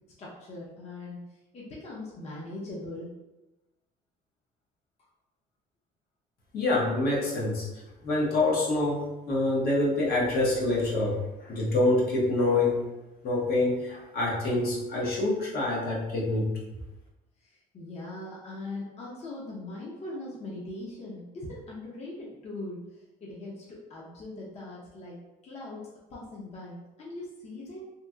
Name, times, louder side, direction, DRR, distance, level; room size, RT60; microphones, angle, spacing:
voice 1, 0.2-1.3 1.5-3.1 17.7-22.8 23.2-27.8, left 2 dB, 40° left, -5 dB, 0.7 m, -40 dB
voice 2, 6.5-7.7 8.0-12.8 13.2-16.5, left 2 dB, 65° left, -4 dB, 1.0 m, -26 dB
2.8 x 2.7 x 2.3 m, 1.0 s
cardioid pair, 110°, 17 cm